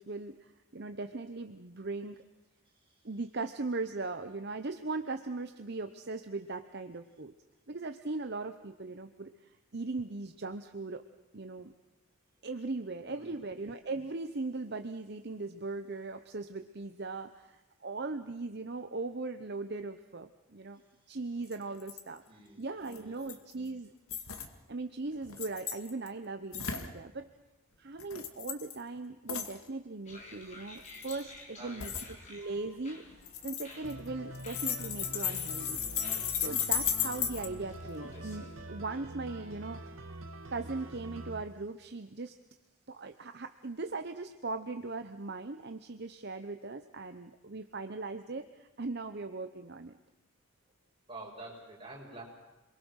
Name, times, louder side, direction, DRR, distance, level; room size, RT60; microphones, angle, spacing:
voice 1, 0.0-2.2 3.0-7.3 7.7-11.0 11.3-11.7 12.4-20.8 21.1-22.2 22.6-23.9 24.7-27.3 27.8-31.9 32.3-33.0 33.4-35.8 36.3-39.9 40.5-42.4 42.9-50.0, right 3 dB, 50° right, 8 dB, 0.9 m, -39 dB
voice 2, 2.7-3.0 13.1-13.5 22.2-22.7 23.0-23.3 24.5-24.7 31.6-32.1 51.1-52.2, right 2 dB, 25° right, -3 dB, 6.9 m, -49 dB
sound 1, 21.5-21.6 21.8-22.0 22.9-23.5 24.1-24.5 25.2-26.1 26.5-26.9 28.0-28.8 29.3-29.6 30.8-31.2 31.8-32.1 33.3-34.1 34.3-37.5, left 9 dB, 90° left, 2.2 m, -34 dB
sound 2, 30.1-38.6, left 2 dB, 35° left, 4.4 m, -52 dB
sound 3, 33.8-41.4, right 1 dB, 70° right, 2.0 m, -45 dB
27.5 x 22.5 x 6.4 m, 1.0 s
head